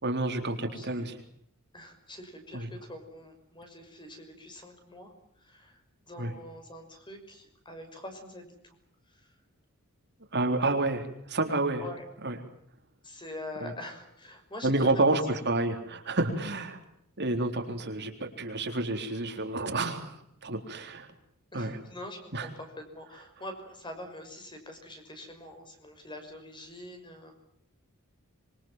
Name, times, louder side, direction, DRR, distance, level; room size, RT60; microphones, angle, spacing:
voice 1, 0.0-1.2 2.5-2.7 6.2-6.3 10.3-11.8 12.2-12.4 13.6-13.7 14.6-16.8 17.2-21.1 21.5-21.8 22.3-22.5, right 2 dB, 55° right, 4 dB, 3.9 m, -29 dB
voice 2, 0.7-1.1 1.7-8.8 9.1-9.3 11.8-12.0 13.0-15.0 21.5-27.4, left 1 dB, 20° left, 6 dB, 6.0 m, -45 dB
26.5 x 24.0 x 7.5 m, 0.69 s
head